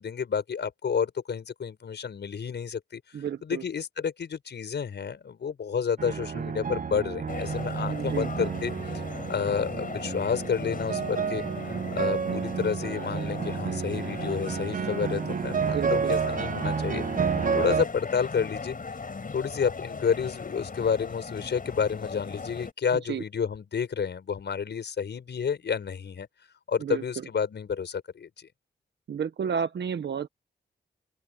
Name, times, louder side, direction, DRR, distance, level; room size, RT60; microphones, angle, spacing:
voice 1, 0.0-3.0 3.4-11.4 11.9-18.8 19.3-26.3 26.7-28.5, left 6 dB, 70° left, 6.1 m, -30 dB
voice 2, 3.1-3.6 7.8-8.3 15.6-16.2 22.9-23.2 26.8-27.3 29.1-30.3, right 7 dB, 70° right, 1.3 m, -32 dB
sound 1, 6.0-17.9, right 6 dB, 45° right, 0.8 m, -30 dB
sound 2, 7.3-22.7, left 4 dB, 50° left, 5.3 m, -38 dB
open air
cardioid pair, 55°, 19 cm